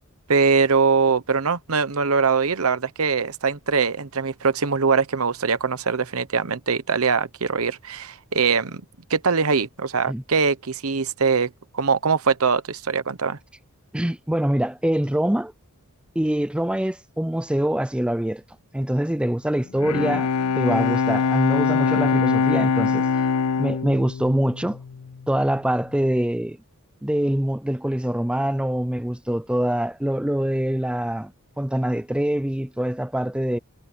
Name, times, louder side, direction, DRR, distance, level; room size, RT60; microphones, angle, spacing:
voice 1, 0.3-8.8 9.1-13.4, right 5 dB, 75° right, 1.0 m, -22 dB
voice 2, 13.9-15.5 16.2-18.4 18.7-20.3 20.6-23.1 23.6-24.8 25.3-26.6 27.0-33.6, right 1 dB, 5° right, 0.4 m, -24 dB
Bowed string instrument, 19.7-25.3, left 5 dB, 85° left, 0.5 m, -23 dB
head